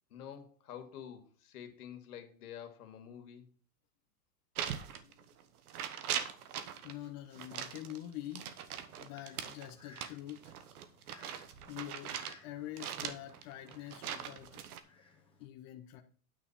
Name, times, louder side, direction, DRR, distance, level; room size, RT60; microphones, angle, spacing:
voice 1, 0.1-3.5, left 9 dB, 75° left, 2.2 m, -48 dB
sound 1, 4.5-5.4 5.7-6.9 7.3-12.4 12.8-14.8, right 9 dB, 70° right, 1.3 m, -41 dB
voice 2, 4.8-5.3 6.5-8.6 9.0-10.5 11.7-12.2 12.4-14.6 15.4-16.0, left 13 dB, 30° left, 0.8 m, -46 dB
Fowl, 8.4-15.4, left 3 dB, 10° left, 1.8 m, -62 dB
9.4 x 4.2 x 7.3 m
supercardioid pair, 145°, 46 cm